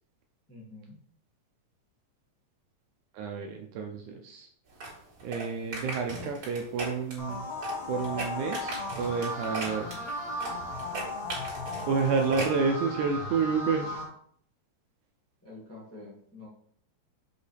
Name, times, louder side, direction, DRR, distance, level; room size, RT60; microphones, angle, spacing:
voice 1, 0.5-1.0 15.4-16.5, left 2 dB, 10° left, -6 dB, 0.7 m, -47 dB
voice 2, 3.1-4.5 5.2-7.5 7.9-9.9 11.9-14.0, right 5 dB, 80° right, 3 dB, 1.9 m, -29 dB
sound 1, 4.7-12.6, right 2 dB, 40° right, 2.8 m, -38 dB
sound 2, 7.2-14.0, left 2 dB, 60° left, 2.5 m, -36 dB
6.6 x 5.2 x 3.3 m, 0.62 s
omnidirectional pair, 3.9 m